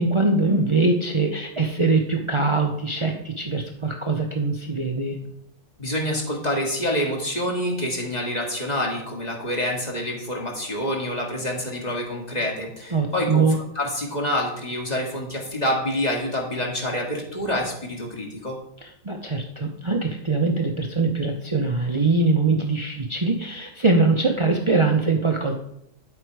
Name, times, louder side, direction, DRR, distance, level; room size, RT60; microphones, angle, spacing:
voice 1, 0.0-5.2 12.9-13.6 19.0-25.5, right 3 dB, 45° right, 2 dB, 0.4 m, -22 dB
voice 2, 5.8-13.5 13.8-18.6, left 1 dB, 25° left, -1 dB, 2.3 m, -27 dB
9.9 x 7.9 x 4.8 m, 0.76 s
omnidirectional pair, 1.9 m